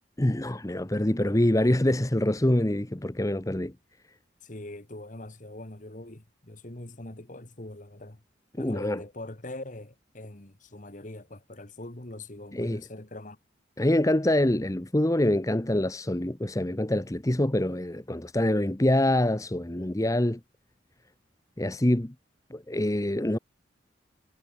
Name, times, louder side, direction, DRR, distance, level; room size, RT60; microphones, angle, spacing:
voice 1, 0.2-3.7 8.6-9.0 12.5-12.8 13.8-20.4 21.6-22.1 22.5-23.4, left 1 dB, 15° left, 0.9 m, -25 dB
voice 2, 4.4-8.2 8.6-13.4, left 1 dB, 40° left, 1.9 m, -42 dB
head